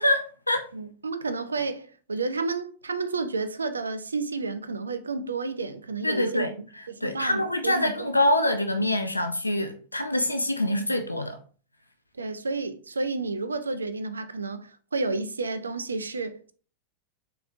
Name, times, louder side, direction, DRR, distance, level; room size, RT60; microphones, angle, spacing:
voice 1, 0.0-0.7 6.0-11.4, left 1 dB, 85° left, 0.3 m, -25 dB
voice 2, 0.7-8.1 12.2-16.5, right 3 dB, 75° right, 0.3 m, -31 dB
4.0 x 2.7 x 2.5 m
figure-of-eight pair, 90°, 0 cm